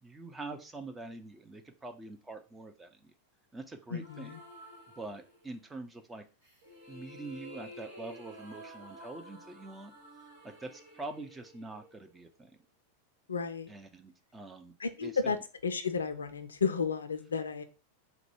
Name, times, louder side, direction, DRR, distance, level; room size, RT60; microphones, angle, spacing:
voice 1, 0.0-3.1 3.5-4.3 5.0-6.2 6.9-9.9 10.4-12.5 13.7-14.7 15.0-15.4, right 2 dB, 10° right, 0.6 m, -45 dB
voice 2, 3.9-4.4 13.3-13.7 14.8-15.4 15.6-17.6, left 5 dB, 70° left, 0.5 m, -32 dB
sound 1, 4.0-5.7 6.4-12.5, equal, 65° right, 1.6 m, -51 dB
3.9 x 2.2 x 4.5 m
figure-of-eight pair, 90°, 0 cm